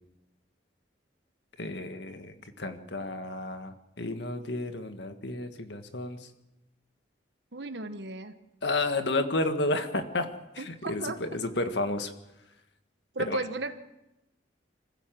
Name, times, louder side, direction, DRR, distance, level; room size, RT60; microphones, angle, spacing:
voice 1, 1.6-6.3 8.6-10.3 10.5-12.1 13.3-13.4, left 2 dB, 70° left, 8 dB, 1.7 m, -31 dB
voice 2, 7.5-8.3 10.6-11.2 13.1-13.7, right 2 dB, 70° right, 9 dB, 1.2 m, -35 dB
26.0 x 15.0 x 7.7 m, 0.94 s
head